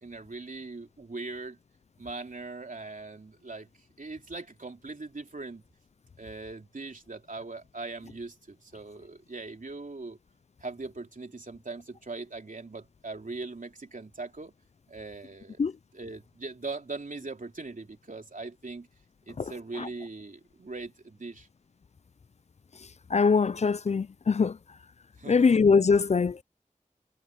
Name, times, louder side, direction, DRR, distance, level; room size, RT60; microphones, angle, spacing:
voice 1, 0.0-1.6 2.0-3.7 4.0-5.6 6.2-10.2 10.6-14.5 14.9-15.6 15.9-18.9 19.3-21.5 25.2-25.5, right 3 dB, 70° right, 3.3 m, -40 dB
voice 2, 23.1-24.6 25.3-26.4, left 5 dB, 55° left, 0.4 m, -22 dB
wide cardioid pair, 50°, 14 cm